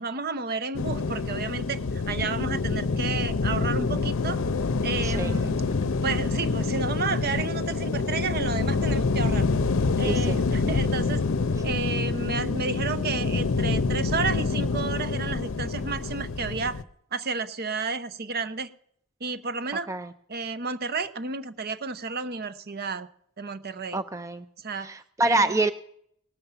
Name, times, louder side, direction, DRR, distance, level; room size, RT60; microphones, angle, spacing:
voice 1, 0.0-1.8 2.1-4.4 4.8-5.5 6.0-9.5 10.0-11.2 11.6-16.8 17.1-18.7 19.2-19.9 20.3-23.1 23.4-24.0 24.6-24.9 25.2-25.6, right 4 dB, 45° right, 13 dB, 0.8 m, -31 dB
sound 1, 0.7-16.8, left 4 dB, 65° left, 0.6 m, -26 dB
voice 2, 10.0-10.3 11.5-11.6 19.9-20.1 23.9-24.4 24.8-25.7, right 2 dB, 15° right, 11 dB, 0.4 m, -26 dB
18.5 x 7.1 x 6.8 m, 0.68 s
head